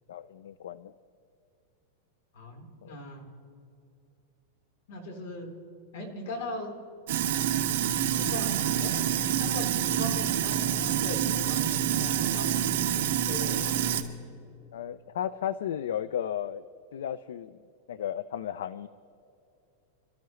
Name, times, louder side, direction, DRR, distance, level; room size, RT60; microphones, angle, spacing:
voice 1, 0.1-0.9 2.8-3.0 14.7-16.6 16.9-17.6 17.9-18.9, left 10 dB, 80° left, 15 dB, 0.4 m, -34 dB
voice 2, 2.3-3.3 4.9-5.5 5.9-6.7 8.1-13.9, left 1 dB, 60° left, 1 dB, 3.8 m, -40 dB
Sink (filling or washing), 7.1-14.0, right 10 dB, 55° right, 1.4 m, -27 dB
27.0 x 13.5 x 3.1 m, 2.7 s
supercardioid pair, 180°, 0 cm